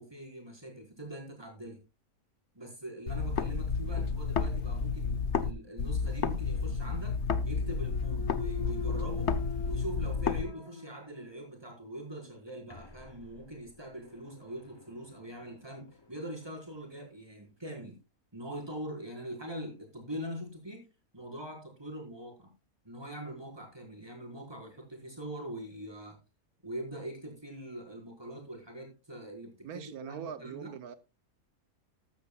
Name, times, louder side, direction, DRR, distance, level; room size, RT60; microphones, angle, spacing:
voice 1, 0.0-1.8 2.5-7.2 7.4-9.3 9.6-18.0 18.3-20.9 21.1-22.5 22.8-26.2 26.6-30.7, right 1 dB, 15° right, 5.0 m, -43 dB
sound 1, 3.1-5.5 5.8-10.4, left 5 dB, 55° left, 1.2 m, -31 dB
Thump thud, 7.5-11.6 12.0-16.7, left 5 dB, 20° left, 0.9 m, -47 dB
voice 2, 29.6-31.0, right 8 dB, 90° right, 1.4 m, -42 dB
14.0 x 12.5 x 2.3 m
omnidirectional pair, 1.5 m